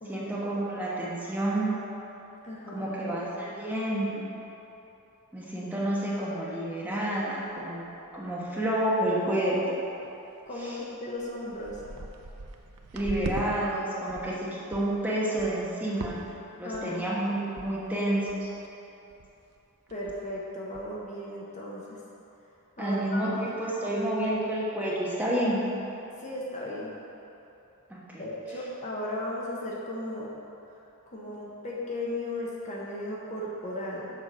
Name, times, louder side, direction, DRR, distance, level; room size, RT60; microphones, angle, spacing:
voice 1, 0.1-1.8 2.7-4.2 5.3-7.9 8.1-9.8 10.6-10.8 12.9-16.2 16.6-18.5 22.8-25.7 27.9-28.2, right 1 dB, 5° right, -7 dB, 1.2 m, -29 dB
voice 2, 2.4-2.9 10.5-11.8 16.6-17.0 19.9-22.0 22.8-23.4 26.2-26.9 28.2-30.3 31.1-34.1, left 1 dB, 35° left, -4 dB, 1.0 m, -36 dB
sound 1, 7.5-7.6 8.1-8.2 8.4-8.9 9.1-9.4 10.0-10.1 10.8-10.9 11.2-13.5 13.8-14.4 14.7-14.9 15.4-15.7 16.0-16.4 16.7-17.1 17.6-17.7 18.0-18.1 18.3-18.7 19.1-19.3 19.6-19.7 19.9-20.3 20.7-20.8, right 3 dB, 75° right, 0.6 m, -40 dB
6.8 x 4.7 x 6.2 m, 2.9 s
head